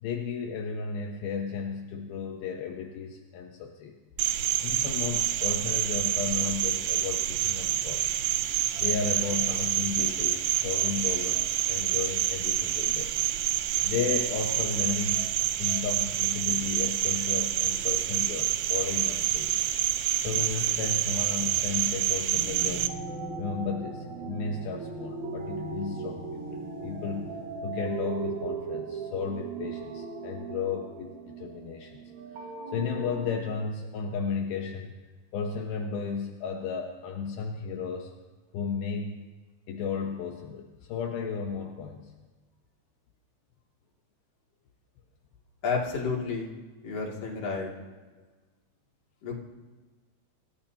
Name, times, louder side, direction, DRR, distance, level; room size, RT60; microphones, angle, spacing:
voice 1, 0.0-4.0 4.6-8.2 8.8-13.1 13.8-15.3 15.6-19.6 20.2-22.9 23.4-27.3 27.6-32.0 32.3-32.5 32.7-35.0 35.3-38.1 38.5-39.2 39.7-42.1 48.2-48.3, left 6 dB, 80° left, 1 dB, 2.2 m, -34 dB
Cricket, 4.2-22.9, right 12 dB, 80° right, 3.1 m, -27 dB
sound 1, 22.3-33.4, right 4 dB, 55° right, 2.2 m, -37 dB
voice 2, 45.6-46.5 46.8-47.7 49.2-49.3, left 4 dB, 40° left, -3 dB, 2.8 m, -30 dB
26.5 x 15.0 x 2.9 m, 1.3 s
omnidirectional pair, 5.6 m